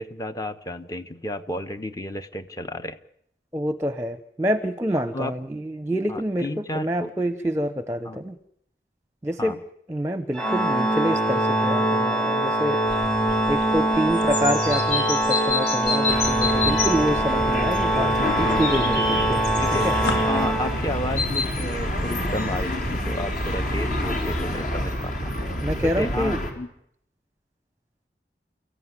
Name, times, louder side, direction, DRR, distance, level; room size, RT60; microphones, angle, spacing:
voice 1, 0.0-3.0 5.1-5.3 6.1-7.1 8.0-8.2 9.4-9.6 18.1-18.9 19.6-25.3 25.8-26.7, left 1 dB, 20° left, 10 dB, 1.1 m, -32 dB
voice 2, 3.5-6.5 6.7-8.4 9.2-9.6 9.9-12.8 13.5-19.4 19.8-19.9 25.6-26.4, equal, 15° right, 11 dB, 0.9 m, -27 dB
Organ, 10.3-21.2, right 1 dB, 5° left, 1.7 m, -23 dB
sound 1, 12.9-24.4, left 3 dB, 65° left, 4.9 m, -31 dB
sound 2, 16.1-26.5, equal, 45° left, 4.1 m, -28 dB
29.5 x 15.0 x 9.8 m, 0.75 s
head